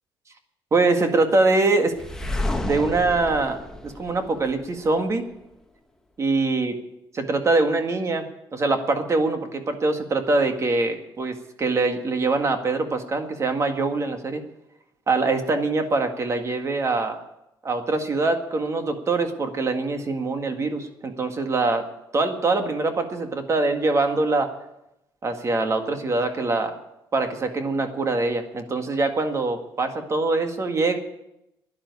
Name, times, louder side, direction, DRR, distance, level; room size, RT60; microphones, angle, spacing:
voice 1, 0.7-1.9 2.6-3.6 3.8-5.2 6.2-6.8 7.1-14.4 15.1-17.2 17.6-21.8 22.1-24.5 25.2-26.8 27.1-31.0, right 3 dB, 35° right, 6 dB, 1.9 m, -23 dB
sound 1, 2.0-4.9, left 1 dB, 5° left, 1.4 m, -30 dB
11.5 x 11.0 x 9.6 m, 0.87 s
cardioid pair, 125°, 9 cm